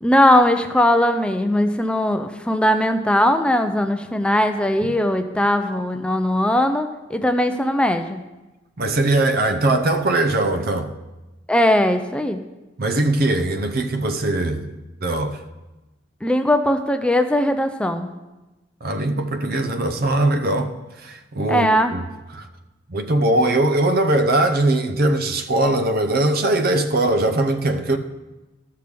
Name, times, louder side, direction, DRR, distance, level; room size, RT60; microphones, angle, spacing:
voice 1, 0.0-8.2 11.5-12.4 16.2-18.1 21.5-22.0, left 1 dB, 5° left, 0.4 m, -19 dB
voice 2, 8.8-10.9 12.8-14.7 15.0-15.4 18.8-20.7 21.0-22.0 22.3-22.5 22.9-28.0, right 2 dB, 55° right, 0.7 m, -20 dB
13.0 x 6.7 x 3.4 m
head